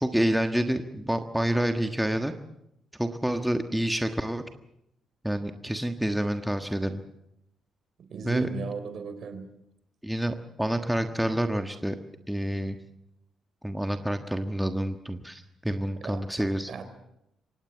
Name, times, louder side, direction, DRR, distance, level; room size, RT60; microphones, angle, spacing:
voice 1, 0.0-2.3 3.0-4.4 5.2-7.0 8.2-8.5 10.0-12.0 12.3-12.8 13.6-16.7, right 1 dB, 5° right, 6 dB, 1.4 m, -28 dB
voice 2, 8.0-9.5 16.0-16.2 16.7-16.8, right 4 dB, 60° right, 10 dB, 3.8 m, -35 dB
24.5 x 18.0 x 7.4 m, 0.80 s
cardioid pair, 90°, 0 cm